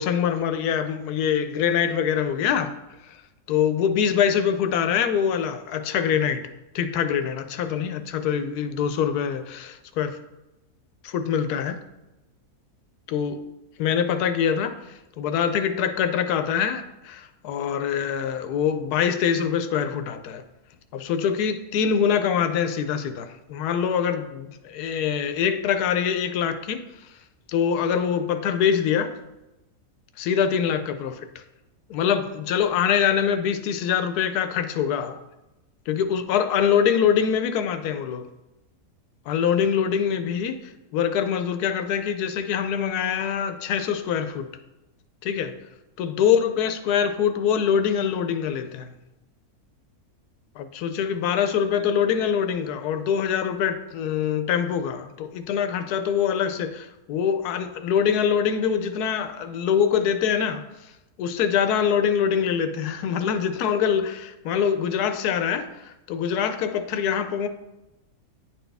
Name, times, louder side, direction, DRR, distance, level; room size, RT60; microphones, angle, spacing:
voice 1, 0.0-2.7 3.5-6.5 6.7-10.2 11.0-11.8 13.1-13.4 13.8-14.7 15.2-20.4 20.9-26.8 27.5-29.1 30.2-31.2 31.9-35.2 35.9-38.2 39.3-40.6 40.9-44.5 45.2-45.5 46.0-48.9 50.6-60.6 61.2-65.7 66.1-67.5, left 8 dB, 85° left, 1.1 m, -24 dB
9.7 x 4.2 x 3.4 m
omnidirectional pair, 1.6 m